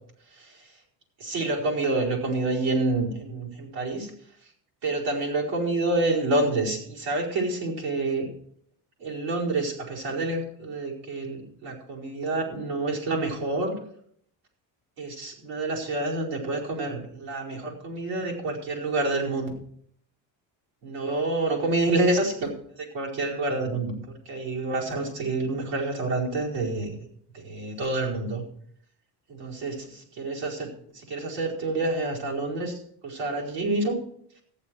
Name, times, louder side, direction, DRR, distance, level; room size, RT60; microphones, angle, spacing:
voice 1, 1.2-4.1 4.8-8.3 9.0-13.7 15.0-19.5 20.8-22.5 22.9-24.0 24.2-26.9 27.3-28.4 29.3-29.9 30.2-30.7 30.9-32.7 33.0-33.9, right 2 dB, 70° right, -3 dB, 4.9 m, -28 dB
14.5 x 10.5 x 4.7 m, 0.63 s
cardioid pair, 175°, 43 cm